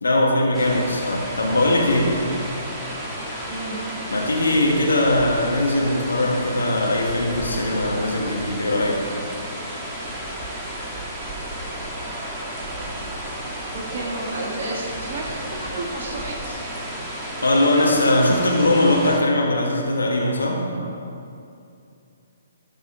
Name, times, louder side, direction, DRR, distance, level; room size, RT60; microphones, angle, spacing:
voice 1, 0.0-2.2 4.1-9.1 17.4-20.7, left 1 dB, 85° left, -1 dB, 1.3 m, -20 dB
sound 1, 0.5-19.2, right 1 dB, 5° right, 1.5 m, -32 dB
voice 2, 3.5-3.8 13.7-16.6 20.8-20.9, right 2 dB, 40° right, -7 dB, 1.6 m, -32 dB
12.0 x 4.9 x 4.9 m, 2.6 s
hypercardioid pair, 135°, 0 cm